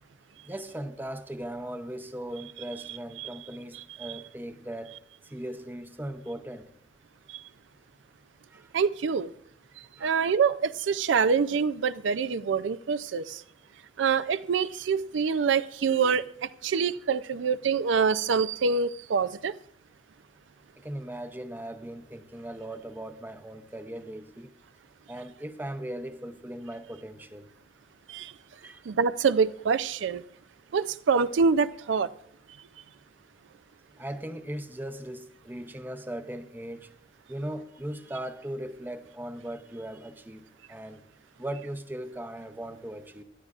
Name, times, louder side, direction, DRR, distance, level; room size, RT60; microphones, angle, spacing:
voice 1, 0.4-5.0 5.2-6.7 8.5-8.7 10.0-10.2 20.8-24.5 25.1-27.5 28.6-28.8 34.0-36.9 37.3-41.0 41.4-43.2, right 1 dB, 10° right, 0.6 m, -38 dB
voice 2, 8.7-9.3 10.0-13.4 14.0-19.5 28.1-28.3 28.9-30.2 30.7-32.1, right 5 dB, 80° right, 0.4 m, -25 dB
23.5 x 13.0 x 2.4 m
head